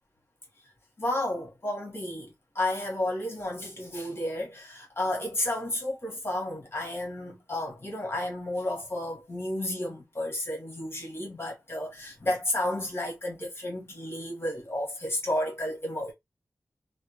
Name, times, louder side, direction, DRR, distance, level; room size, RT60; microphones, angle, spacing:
voice 1, 1.0-16.1, left 1 dB, 40° left, 1.2 m, -32 dB
2.5 x 2.2 x 2.8 m
wide cardioid pair, 100°, 6 cm